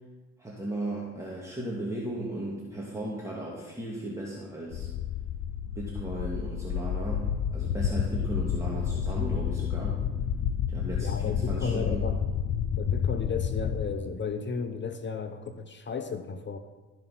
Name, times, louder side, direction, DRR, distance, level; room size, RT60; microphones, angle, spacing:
voice 1, 0.4-4.9 5.8-10.0 10.7-12.1, right 1 dB, 10° right, -5 dB, 2.0 m, -36 dB
sound 1, 4.7-13.8, left 8 dB, 70° left, 0.7 m, -30 dB
voice 2, 11.0-12.2 12.8-16.6, left 5 dB, 40° left, 8 dB, 0.7 m, -34 dB
13.5 x 5.6 x 5.7 m, 1.3 s
cardioid pair, 90°, 30 cm